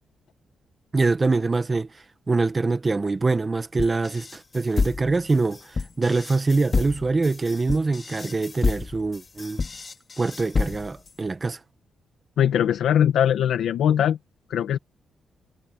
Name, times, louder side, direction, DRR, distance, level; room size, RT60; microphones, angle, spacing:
voice 1, 0.9-1.9 2.3-9.6 10.2-11.6, right 3 dB, 25° right, 1.6 m, -24 dB
sound 1, 3.8-11.1, left 4 dB, 30° left, 2.8 m, -29 dB
voice 2, 12.4-14.2 14.5-14.8, left 9 dB, 85° left, 1.8 m, -21 dB
cardioid pair, 125°, 0 cm